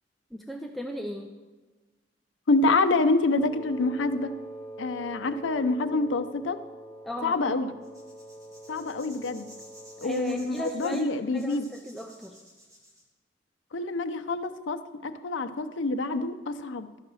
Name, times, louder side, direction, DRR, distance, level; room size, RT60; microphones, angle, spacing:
voice 1, 0.3-1.3 7.0-7.6 10.0-12.4, equal, ahead, 3 dB, 0.4 m, -36 dB
voice 2, 2.5-4.3 4.8-6.6 7.2-7.7 8.7-9.5 10.0-11.7 13.7-16.9, left 3 dB, 85° left, 9 dB, 0.6 m, -27 dB
Wind instrument woodwind instrument, 3.3-10.6, right 1 dB, 25° left, 1.0 m, -44 dB
sound 1, 7.8-13.0, equal, 20° right, 1.7 m, -52 dB
12.0 x 4.8 x 6.2 m, 1.3 s
head